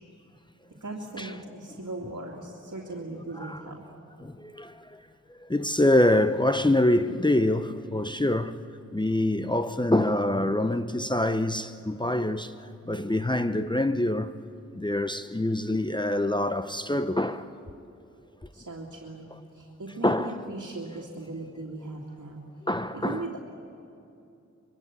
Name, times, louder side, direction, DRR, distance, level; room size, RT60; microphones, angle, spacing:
voice 1, 0.8-3.8 18.5-22.4 22.9-23.4, right 2 dB, 70° right, 2.7 m, -38 dB
voice 2, 4.2-5.0 5.5-8.6 8.9-12.5 12.9-14.3 14.7-17.5 20.0-20.4 22.6-23.3, left 1 dB, 15° left, 0.7 m, -25 dB
24.0 x 23.0 x 8.5 m
wide cardioid pair, 85°, 30 cm